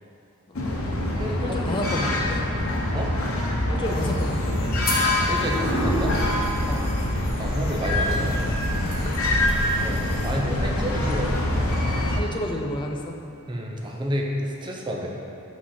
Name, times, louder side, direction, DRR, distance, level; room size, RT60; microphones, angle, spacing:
sound 1, 0.5-12.2, left 1 dB, 70° left, 0.9 m, -24 dB
voice 1, 0.5-2.4 3.7-4.7 6.7-6.9 9.0-9.4 12.1-13.2, left 1 dB, 20° left, 2 dB, 0.5 m, -31 dB
voice 2, 1.1-1.7 2.9-3.1 5.3-6.2 7.4-8.4 9.8-11.4 13.5-15.3, equal, 20° right, -1 dB, 0.6 m, -30 dB
sound 2, 3.9-10.4, left 2 dB, 45° left, 1.1 m, -38 dB
5.0 x 4.2 x 5.6 m, 2.8 s
head